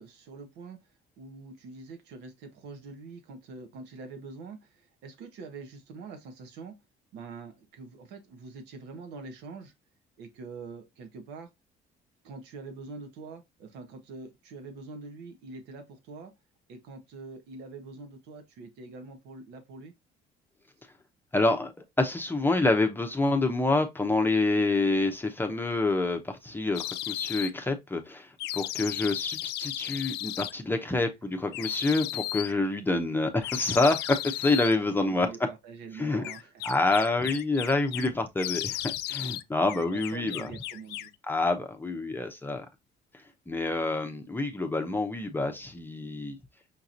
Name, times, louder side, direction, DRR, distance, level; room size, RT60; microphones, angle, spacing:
voice 1, 0.0-6.8 7.1-9.7 10.2-11.5 12.2-16.3 16.7-19.9 35.1-37.0 39.9-41.1, right 4 dB, 90° right, 1.1 m, -45 dB
voice 2, 21.3-21.7 22.0-35.3 36.0-36.2 36.6-40.5 41.3-42.7 43.5-46.4, left 2 dB, 10° left, 0.7 m, -27 dB
sound 1, 26.7-27.5 28.4-30.5 31.5-32.5 33.4-34.8 36.2-38.1 38.4-39.4 39.7-41.1, left 15 dB, 80° left, 0.4 m, -35 dB
5.8 x 2.8 x 2.5 m
cardioid pair, 110°, 17 cm